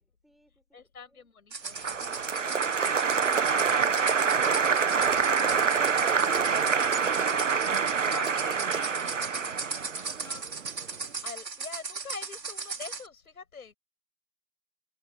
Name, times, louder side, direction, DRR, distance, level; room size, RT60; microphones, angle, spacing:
voice 1, 0.0-1.3 9.8-10.8, equal, ahead, 7.5 m, -65 dB
voice 2, 0.7-2.0 8.0-9.3 10.2-10.4 11.2-13.7, left 5 dB, 60° left, 6.7 m, -45 dB
sound 1, 1.5-13.1, right 4 dB, 85° right, 5.9 m, -38 dB
sound 2, 1.7-6.9, left 9 dB, 20° left, 2.5 m, -56 dB
Applause, 1.8-10.9, right 6 dB, 50° right, 1.5 m, -26 dB
hypercardioid pair, 175°, 49 cm